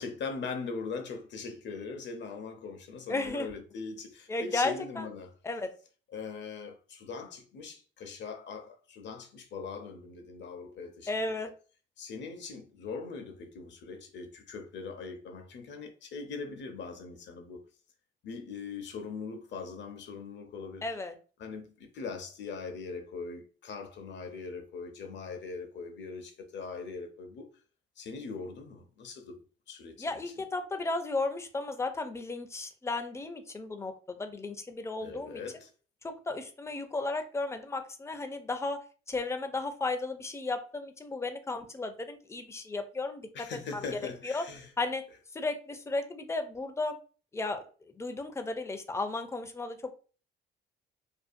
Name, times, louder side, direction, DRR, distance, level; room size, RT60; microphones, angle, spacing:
voice 1, 0.0-5.3 6.1-11.4 12.0-17.6 18.2-20.9 21.4-27.5 28.0-29.4 29.7-30.3 35.0-35.7 43.3-44.7, left 4 dB, 65° left, 0.6 m, -41 dB
voice 2, 3.1-3.5 4.3-5.1 5.4-5.7 11.1-11.5 20.8-21.1 30.0-35.4 36.0-38.8 39.1-43.3 44.2-44.4 44.8-45.0 45.3-47.0 47.3-47.6 48.0-50.0, left 3 dB, 15° left, 0.4 m, -34 dB
2.6 x 2.3 x 2.4 m
cardioid pair, 90°, 20 cm